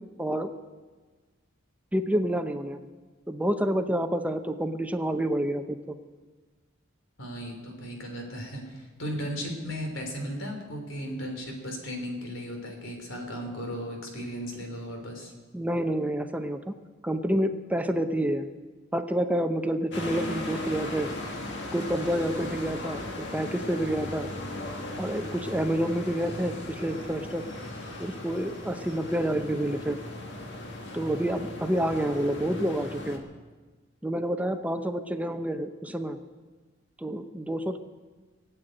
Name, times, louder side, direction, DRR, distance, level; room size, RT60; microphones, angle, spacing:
voice 1, 0.2-0.5 1.9-2.8 3.3-6.0 15.5-16.7 17.0-18.5 18.9-21.1 21.7-24.3 25.0-27.4 28.0-30.0 30.9-33.2 34.0-36.2 37.0-37.8, right 1 dB, 10° right, 8 dB, 0.7 m, -28 dB
voice 2, 7.2-15.3, equal, 85° left, 3 dB, 3.3 m, -36 dB
sound 1, 19.9-33.2, left 1 dB, 65° left, 2.0 m, -37 dB
18.0 x 8.2 x 8.9 m, 1.3 s
head